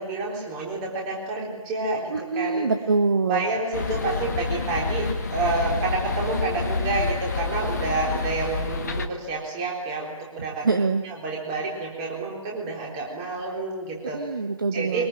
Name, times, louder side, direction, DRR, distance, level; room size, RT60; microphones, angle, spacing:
voice 1, 0.0-2.7 3.2-10.7 11.0-14.2 14.7-15.1, right 3 dB, 10° right, -2 dB, 3.9 m, -29 dB
voice 2, 2.1-3.4 10.4-11.0 14.1-15.1, right 4 dB, 35° right, 6 dB, 1.3 m, -24 dB
sound 1, 3.7-9.1, left 4 dB, 30° left, 1.5 m, -28 dB
23.5 x 21.5 x 8.9 m, 1.2 s
figure-of-eight pair, 155°, 18 cm